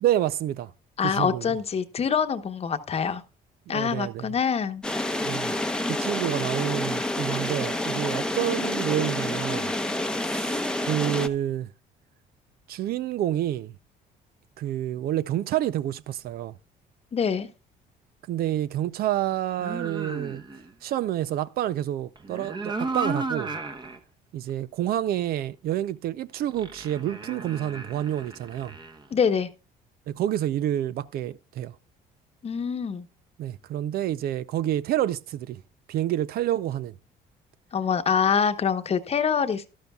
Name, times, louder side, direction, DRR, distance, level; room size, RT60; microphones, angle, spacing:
voice 1, 0.0-0.7 1.0-1.6 3.7-4.3 5.2-5.5 5.9-9.7 10.2-11.7 12.7-13.8 14.6-16.6 18.3-20.4 20.8-23.5 24.3-28.7 30.1-31.7 33.4-35.6 35.9-36.9, right 12 dB, 65° right, 0.5 m, -28 dB
voice 2, 1.0-3.2 3.7-4.8 17.1-17.5 29.1-29.5 32.4-33.1 37.7-39.7, left 7 dB, 35° left, 1.0 m, -25 dB
sound 1, 4.8-11.3, left 1 dB, 5° left, 0.8 m, -28 dB
sound 2, 19.6-20.7 22.2-24.0 24.5-24.6 26.5-29.1, right 3 dB, 25° right, 1.1 m, -34 dB
12.5 x 12.0 x 2.3 m
cardioid pair, 110°, 17 cm